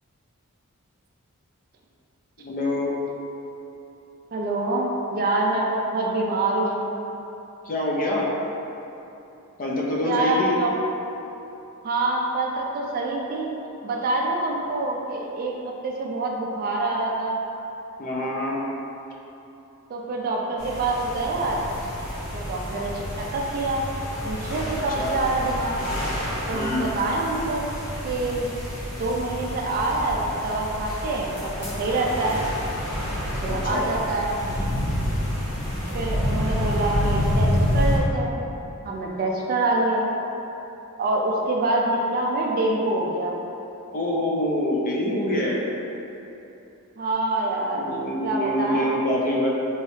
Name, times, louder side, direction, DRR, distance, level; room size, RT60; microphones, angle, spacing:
voice 1, 2.4-3.0 7.6-8.3 9.6-10.6 18.0-18.6 24.9-25.2 26.5-26.8 33.6-33.9 43.9-45.6 47.7-49.5, left 1 dB, 40° left, -3 dB, 0.5 m, -25 dB
voice 2, 4.3-6.8 10.0-10.7 11.8-13.5 13.8-15.5 15.8-17.4 19.9-21.6 22.3-23.9 24.2-25.7 26.5-27.6 28.0-28.5 28.9-32.4 33.4-34.4 35.9-38.4 38.8-40.1 41.0-43.3 47.0-47.9 48.2-48.9, right 2 dB, 40° right, -1 dB, 0.3 m, -26 dB
sound 1, 20.6-38.0, equal, 85° left, 1.1 m, -28 dB
3.1 x 3.1 x 2.7 m, 2.9 s
head